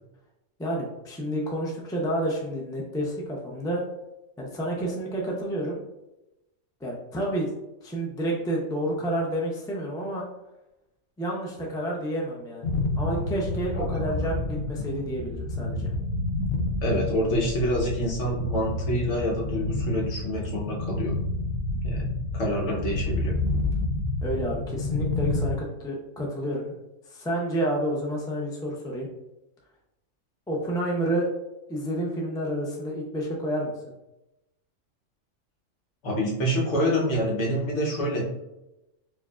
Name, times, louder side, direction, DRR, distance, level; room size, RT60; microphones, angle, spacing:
voice 1, 0.6-3.8 4.4-5.8 6.8-7.5 7.8-10.2 11.2-12.7 13.0-15.9 24.2-26.7 27.1-29.1 30.5-31.3 31.7-33.7, right 1 dB, 5° left, -2 dB, 0.3 m, -29 dB
sound 1, 12.6-25.5, left 2 dB, 90° left, 1.0 m, -29 dB
voice 2, 16.8-21.2 21.8-22.1 22.3-23.4 36.0-38.2, equal, 65° left, -2 dB, 1.2 m, -27 dB
4.7 x 2.6 x 2.4 m, 0.93 s
omnidirectional pair, 1.4 m